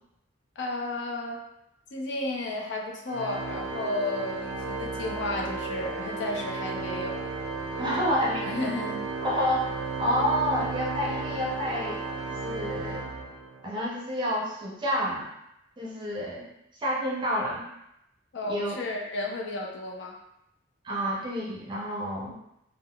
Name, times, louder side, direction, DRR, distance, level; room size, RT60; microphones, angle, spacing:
voice 1, 0.6-1.4 1.9-7.2 8.4-9.0 18.3-20.1, left 2 dB, 70° left, 0 dB, 0.5 m, -33 dB
Organ, 3.1-13.7, right 4 dB, 75° right, 0.4 m, -34 dB
voice 2, 7.8-8.5 9.2-12.0 12.3-13.1 13.6-15.3 15.8-16.5 16.8-17.6 18.5-18.7 20.8-22.3, equal, 25° right, -5 dB, 0.5 m, -29 dB
3.6 x 2.0 x 2.2 m, 0.83 s
head